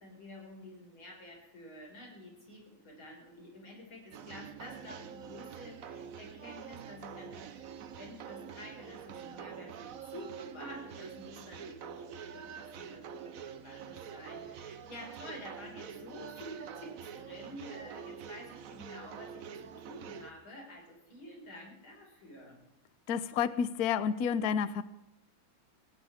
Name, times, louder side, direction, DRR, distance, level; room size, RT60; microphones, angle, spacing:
voice 1, 0.0-7.7 8.0-13.3 13.6-22.6, left 1 dB, 85° left, -1 dB, 6.0 m, -49 dB
sound 1, 4.1-20.3, right 7 dB, 55° right, 1.0 m, -46 dB
voice 2, 23.1-24.8, left 7 dB, 60° left, 14 dB, 1.2 m, -30 dB
19.0 x 18.5 x 3.6 m, 0.92 s
omnidirectional pair, 2.2 m